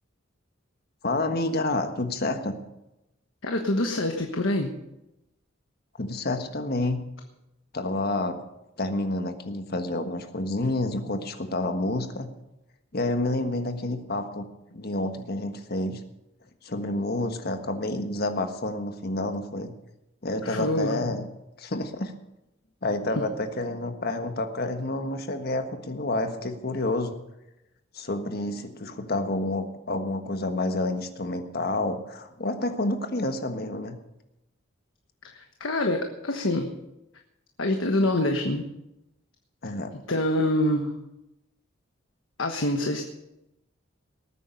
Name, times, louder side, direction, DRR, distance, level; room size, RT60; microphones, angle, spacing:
voice 1, 1.0-2.6 6.0-7.0 7.7-8.4 8.8-12.3 12.9-16.0 16.6-19.7 20.2-21.3 21.6-22.1 22.8-27.1 27.9-34.0 39.6-39.9, left 2 dB, 50° left, 7 dB, 1.5 m, -29 dB
voice 2, 3.4-4.7 20.4-21.0 35.3-36.7 37.6-38.6 40.1-40.9 42.4-43.0, left 1 dB, 80° left, 4 dB, 1.3 m, -25 dB
20.0 x 9.1 x 5.3 m, 0.91 s
head